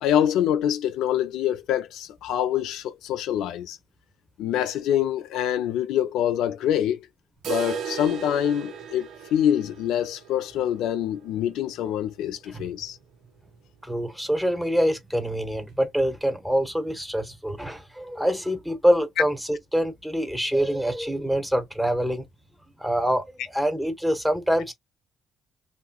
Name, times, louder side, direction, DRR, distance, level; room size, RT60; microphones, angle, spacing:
voice 1, 0.0-3.8 4.4-7.0 7.5-13.0, left 10 dB, 90° left, 0.5 m, -25 dB
sound 1, 7.4-13.3 13.5-13.6 14.0-14.1 14.6-14.7 15.6-15.7, right 7 dB, 75° right, 0.7 m, -37 dB
voice 2, 13.8-22.2 22.8-24.7, equal, 5° right, 1.0 m, -25 dB
2.9 x 2.7 x 2.3 m
cardioid pair, 90°, 0 cm